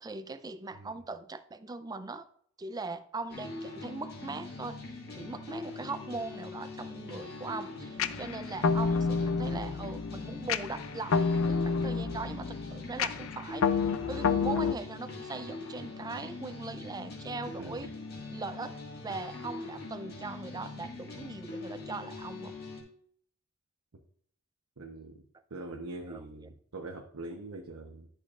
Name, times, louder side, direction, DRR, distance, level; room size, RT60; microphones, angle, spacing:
voice 1, 0.0-2.3 2.6-17.9 18.3-18.8 19.0-22.6 26.1-26.2, right 3 dB, 15° right, 11 dB, 0.4 m, -40 dB
voice 2, 0.7-1.0 17.6-17.9 24.8-25.2 25.5-28.1, right 2 dB, 80° right, 1 dB, 0.9 m, -43 dB
sound 1, 3.3-22.8, left 3 dB, 45° left, 1.8 m, -42 dB
sound 2, 8.0-14.7, left 5 dB, 65° left, 0.4 m, -29 dB
11.0 x 6.5 x 2.4 m, 0.62 s
head